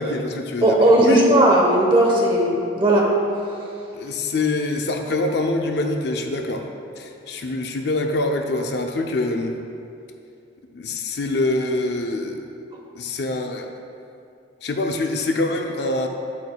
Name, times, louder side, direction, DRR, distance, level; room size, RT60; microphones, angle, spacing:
voice 1, 0.0-1.3 3.9-6.7 7.0-9.6 10.7-12.5 13.0-13.7 14.6-16.1, left 2 dB, 55° left, 4 dB, 0.5 m, -25 dB
voice 2, 0.6-3.1, right 1 dB, 25° right, -2 dB, 1.0 m, -16 dB
8.3 x 8.2 x 2.3 m, 2.5 s
head